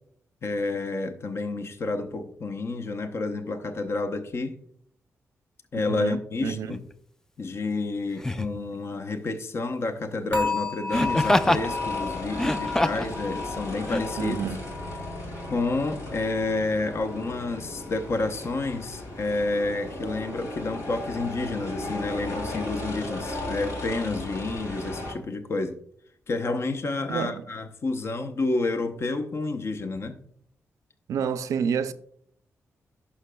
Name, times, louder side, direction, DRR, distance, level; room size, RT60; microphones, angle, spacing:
voice 1, 0.4-4.5 5.7-6.8 7.4-14.4 15.5-25.8 26.3-30.2, left 3 dB, 50° left, 0.7 m, -29 dB
voice 2, 5.9-6.7 14.2-14.7 27.1-27.4 31.1-31.9, right 7 dB, 85° right, 0.4 m, -29 dB
Laughter, 6.7-6.9 8.2-8.6 10.9-11.7 12.3-13.1 13.9-14.0, left 1 dB, 10° left, 0.3 m, -24 dB
sound 1, 10.3-17.4 17.7-18.1 18.6-18.7, left 4 dB, 30° left, 1.8 m, -34 dB
sound 2, 10.9-25.1, left 1 dB, 75° left, 2.1 m, -36 dB
11.0 x 5.8 x 2.2 m
cardioid pair, 90°, 5 cm